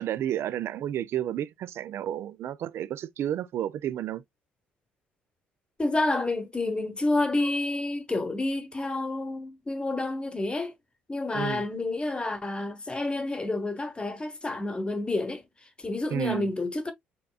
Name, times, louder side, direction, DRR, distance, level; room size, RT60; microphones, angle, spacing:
voice 1, 0.0-4.2 11.3-11.6 16.1-16.5, right 11 dB, 55° right, 0.4 m, -31 dB
voice 2, 5.8-10.7 11.1-15.4 15.8-16.9, left 2 dB, 20° left, 1.0 m, -29 dB
4.5 x 3.6 x 2.2 m
hypercardioid pair, 50°, 5 cm